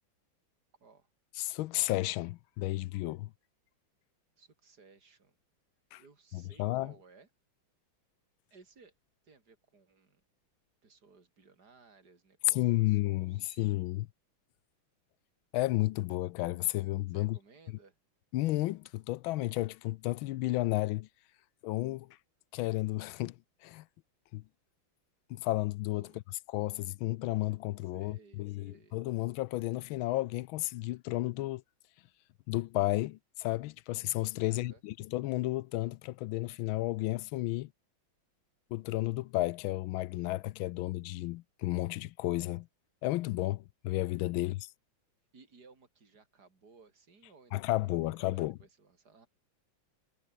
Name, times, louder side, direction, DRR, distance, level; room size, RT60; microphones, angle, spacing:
voice 1, 1.4-3.3 5.9-6.0 6.3-6.9 12.5-14.1 15.5-17.4 18.3-21.1 21.6-22.1 22.5-23.4 23.6-23.8 24.3-24.4 25.3-26.1 26.5-31.6 32.5-37.7 38.7-42.7 43.0-44.7 47.5-48.5, left 17 dB, 80° left, 1.4 m, -32 dB
voice 2, 4.4-5.4 6.0-7.3 8.5-8.9 9.2-10.2 10.8-13.7 17.1-18.0 26.0-26.2 27.8-29.0 34.4-34.8 44.3-44.6 45.3-49.3, right 4 dB, 50° right, 4.3 m, -60 dB
omnidirectional pair, 2.2 m